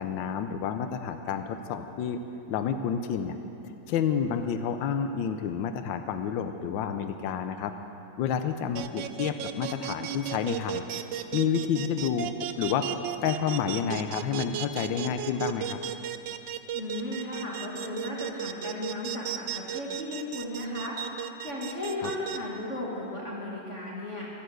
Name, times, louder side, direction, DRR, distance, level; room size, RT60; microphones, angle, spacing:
voice 1, 0.0-2.2 2.5-3.4 3.9-7.7 8.2-10.8 11.3-12.3 12.6-12.9 13.2-15.8 22.0-22.1, left 7 dB, 80° left, 8 dB, 1.4 m, -29 dB
sound 1, 8.8-22.4, right 11 dB, 80° right, 1.3 m, -34 dB
voice 2, 16.7-21.0 21.4-24.3, left 1 dB, 40° left, -4 dB, 2.2 m, -35 dB
12.0 x 11.5 x 7.9 m, 2.8 s
omnidirectional pair, 2.1 m